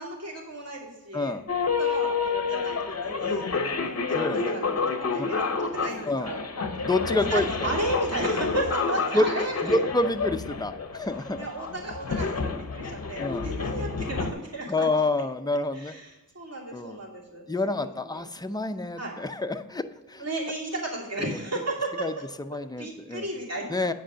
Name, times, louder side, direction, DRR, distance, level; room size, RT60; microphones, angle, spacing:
voice 1, 0.0-1.4 1.8-6.4 7.3-9.8 11.4-14.9 15.7-18.3 19.0-19.1 20.2-22.1 22.8-23.6, right 2 dB, 45° right, -3 dB, 2.7 m, -34 dB
voice 2, 1.1-1.5 4.1-4.4 5.2-5.3 6.1-6.3 6.8-7.7 9.1-9.2 9.6-11.5 13.2-13.5 14.7-15.9 16.7-17.0 17.5-20.3 21.2-21.3 22.0-22.1 22.5-23.3 23.7-23.9, left 2 dB, 10° left, 8 dB, 0.6 m, -28 dB
sound 1, 1.5-14.3, left 4 dB, 45° left, 0.8 m, -29 dB
sound 2, 5.7-7.7, right 1 dB, 70° right, 3.2 m, -44 dB
9.1 x 5.1 x 6.3 m, 1.1 s
wide cardioid pair, 75°, 35 cm